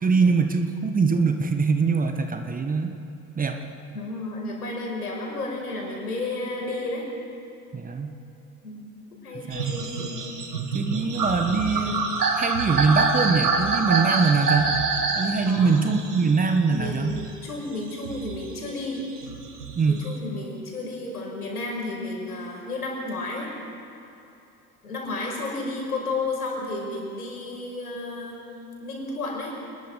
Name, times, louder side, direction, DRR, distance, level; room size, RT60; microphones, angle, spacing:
voice 1, 0.0-2.9 3.3-3.6 7.7-8.1 9.3-9.7 10.7-12.0 12.3-14.7 15.1-17.2 19.8-20.0, right 4 dB, 20° right, 6 dB, 1.5 m, -23 dB
voice 2, 3.9-7.1 8.6-8.9 9.2-10.2 15.5-15.8 16.7-19.1 19.9-23.5 24.8-28.4 28.8-29.6, left 2 dB, 75° left, -1 dB, 5.6 m, -32 dB
sound 1, 9.5-17.5 17.9-20.2, right 4 dB, 80° right, 2.1 m, -26 dB
28.0 x 21.0 x 5.2 m, 2.7 s
figure-of-eight pair, 75°, 46 cm